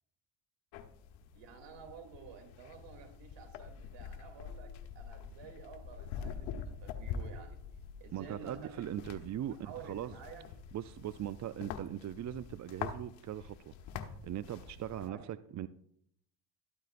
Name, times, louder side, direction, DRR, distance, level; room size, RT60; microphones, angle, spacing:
sound 1, 0.7-15.1, left 7 dB, 75° left, 1.1 m, -45 dB
voice 1, 1.3-7.6 8.0-10.5 15.1-15.3, right 6 dB, 65° right, 2.9 m, -52 dB
voice 2, 8.1-9.6 9.8-10.2 10.7-15.7, right 11 dB, 40° right, 0.5 m, -40 dB
13.0 x 12.0 x 2.5 m
supercardioid pair, 70°, 46 cm